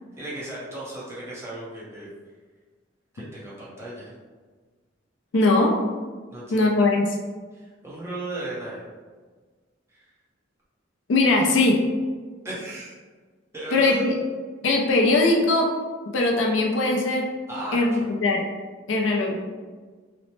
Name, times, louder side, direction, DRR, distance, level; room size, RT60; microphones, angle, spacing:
voice 1, 0.2-2.1 3.1-4.1 6.3-6.6 7.5-8.8 9.9-10.1 12.4-13.0 13.5-14.1 17.5-18.1, right 1 dB, 15° right, -8 dB, 0.7 m, -35 dB
voice 2, 5.3-5.7 6.5-7.1 11.1-11.8 13.7-14.2 14.6-15.7 16.1-17.3 17.7-18.4 18.9-19.3, left 2 dB, 75° left, 0 dB, 0.5 m, -20 dB
2.9 x 2.0 x 3.0 m, 1.4 s
head